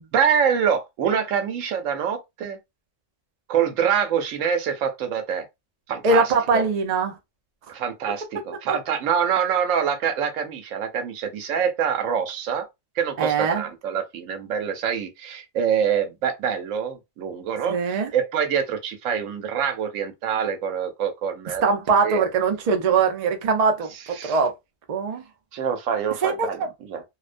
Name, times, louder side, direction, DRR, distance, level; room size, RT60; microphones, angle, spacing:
voice 1, 0.1-2.6 3.5-5.5 5.9-6.6 7.7-12.7 13.0-21.6 22.0-22.2 24.1-24.4 25.5-27.0, right 7 dB, 90° right, 1.0 m, -25 dB
voice 2, 6.0-7.2 13.2-13.6 17.7-18.1 21.6-23.9 24.2-24.5 24.9-25.2 26.2-26.7, right 4 dB, 50° right, 0.5 m, -21 dB
2.4 x 2.1 x 2.4 m
omnidirectional pair, 1.3 m